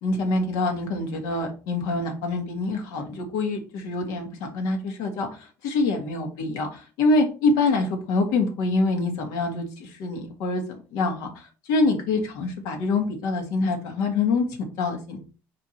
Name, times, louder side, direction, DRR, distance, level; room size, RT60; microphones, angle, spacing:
voice 1, 0.0-10.6 10.9-14.5 14.8-15.2, left 3 dB, 75° left, 3 dB, 1.9 m, -25 dB
4.9 x 4.6 x 4.5 m, 0.35 s
cardioid pair, 180°, 6 cm